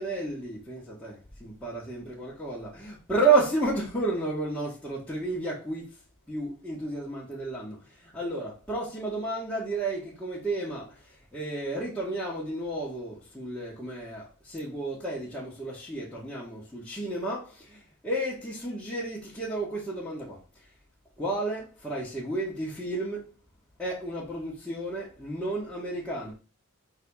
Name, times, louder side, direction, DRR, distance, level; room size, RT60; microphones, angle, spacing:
voice 1, 0.0-5.9 6.3-7.8 8.1-10.9 11.3-20.4 21.2-23.3 23.8-26.3, right 2 dB, 5° left, 1.8 m, -31 dB
4.9 x 4.1 x 5.5 m
head